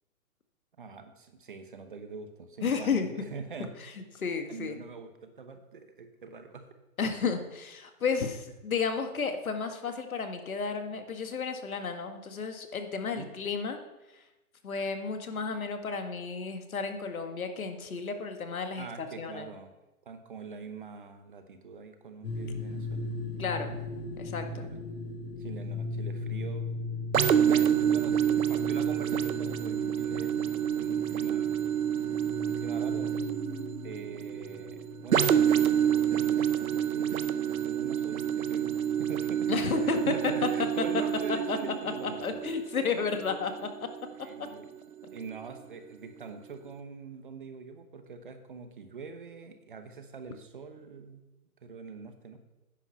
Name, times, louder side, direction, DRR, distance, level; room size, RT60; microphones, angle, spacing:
voice 1, 0.8-3.7 4.5-6.7 13.1-13.3 18.8-19.7 20.1-23.1 24.5-24.8 25.4-26.8 27.5-30.4 30.8-31.5 32.5-33.2 33.8-42.5 44.2-44.7 45.1-51.2 51.6-52.4, right 4 dB, 35° right, 7 dB, 1.0 m, -44 dB
voice 2, 2.6-3.1 3.8-3.9 4.2-4.8 7.0-13.8 14.1-14.2 14.6-19.5 23.4-23.7 24.2-24.7 39.5-40.3 41.5-41.6 41.8-43.5, left 5 dB, 65° left, 6 dB, 1.9 m, -32 dB
sound 1, 22.2-40.5, left 3 dB, 40° left, 2.7 m, -40 dB
sound 2, 27.1-44.7 45.2-45.3, right 9 dB, 70° right, 0.9 m, -28 dB
10.0 x 8.7 x 5.8 m, 1.0 s
hypercardioid pair, 170°, 45 cm